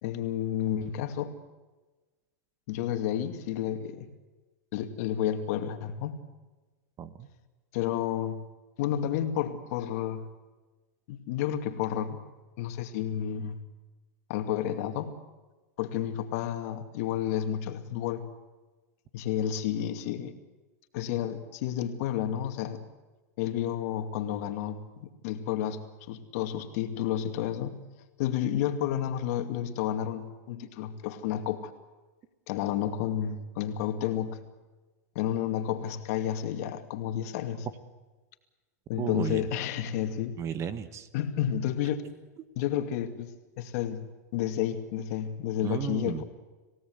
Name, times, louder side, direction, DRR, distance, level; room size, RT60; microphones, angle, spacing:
voice 1, 0.0-1.4 2.7-4.1 4.7-6.2 7.7-8.5 8.8-10.3 11.1-12.2 12.6-13.6 14.3-15.1 15.8-18.3 19.1-20.3 20.9-22.9 23.4-27.8 28.2-31.7 32.5-34.4 35.1-37.7 38.9-40.4 41.1-42.0 42.6-43.3 43.6-44.1 44.3-46.2, left 10 dB, 60° left, 6 dB, 2.5 m, -31 dB
voice 2, 39.0-39.4 40.4-41.1 45.6-46.2, right 8 dB, 30° right, 12 dB, 1.5 m, -33 dB
27.5 x 17.0 x 8.1 m, 1.2 s
hypercardioid pair, 120°, 9 cm